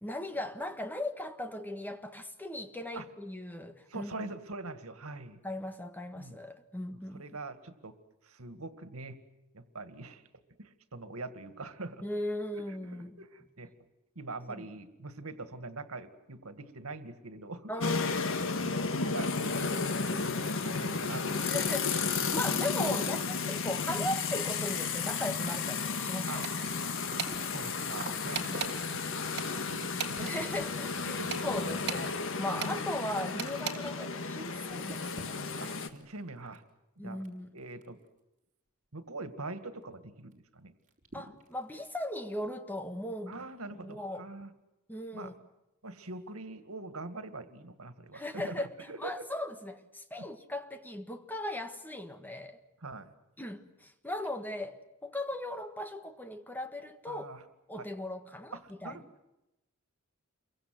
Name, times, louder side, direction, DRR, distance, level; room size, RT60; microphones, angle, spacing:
voice 1, 0.0-4.3 5.4-7.2 12.0-13.2 14.5-14.7 17.7-18.2 21.4-26.7 28.3-28.6 30.2-35.8 37.0-37.5 41.1-43.4 43.8-44.3 44.9-45.3 48.1-52.6 53.4-57.3 57.7-59.0, left 1 dB, 10° left, 1.6 m, -38 dB
voice 2, 3.9-5.4 6.1-6.4 7.1-8.0 8.2-9.2 9.5-10.3 10.6-12.0 12.5-13.9 14.2-17.8 18.6-21.5 26.3-26.5 27.4-29.1 29.4-30.4 31.1-31.4 32.4-32.7 35.6-36.6 37.0-37.2 37.5-38.0 38.9-40.7 43.3-44.5 45.1-45.3 45.8-49.3 50.2-50.3 52.8-53.1 57.1-57.4 57.8-57.9 58.5-59.3, right 2 dB, 85° right, 2.0 m, -44 dB
sound 1, 17.8-35.9, left 4 dB, 65° left, 1.7 m, -33 dB
sound 2, 26.3-34.1 34.3-37.3 37.6-38.1 38.4-38.5 39.8-39.9 40.3-40.4 40.8-42.0 42.8-42.9, right 2 dB, 35° right, 5.1 m, -50 dB
sound 3, 26.4-26.8 27.2-27.4 28.3-28.7 29.4-30.4 31.3-32.1 32.6-32.8 33.4-33.8, right 7 dB, 55° right, 3.1 m, -36 dB
28.5 x 23.5 x 7.8 m
head